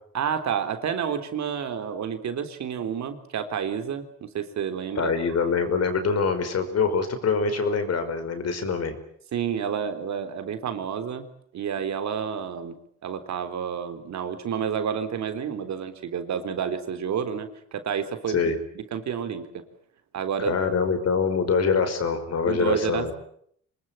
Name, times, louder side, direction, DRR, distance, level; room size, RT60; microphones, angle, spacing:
voice 1, 0.1-5.4 9.3-11.3 11.5-19.6 20.1-20.6 22.4-23.1, right 7 dB, 65° right, 8 dB, 3.6 m, -30 dB
voice 2, 5.0-8.9 18.3-18.6 20.5-23.1, left 5 dB, 55° left, 9 dB, 5.2 m, -24 dB
26.0 x 20.5 x 9.0 m, 0.67 s
cardioid pair, 90°, 30 cm